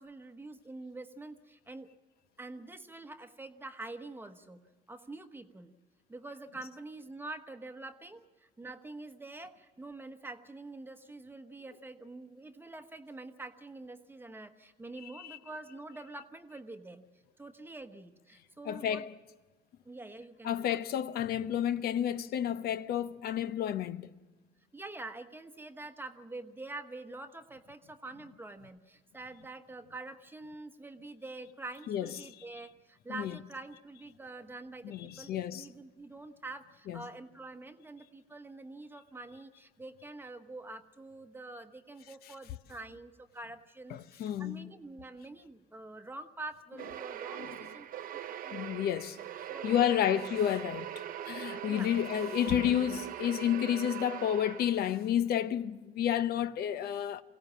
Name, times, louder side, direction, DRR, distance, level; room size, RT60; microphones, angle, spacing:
voice 1, 0.0-1.9 2.4-4.6 4.9-5.7 6.1-17.0 17.4-19.1 19.8-20.9 24.7-49.0 49.5-50.1 51.6-51.9, right 2 dB, 10° right, 1.0 m, -46 dB
voice 2, 18.7-19.1 20.4-24.1 31.9-32.4 33.1-33.4 34.8-35.7 36.9-37.0 43.9-44.6 47.4-47.5 48.5-49.2 49.6-50.9 51.2-57.2, left 10 dB, 65° left, 0.8 m, -31 dB
sound 1, 46.8-55.1, right 11 dB, 55° right, 0.7 m, -41 dB
23.0 x 17.0 x 7.5 m
cardioid pair, 110°, 17 cm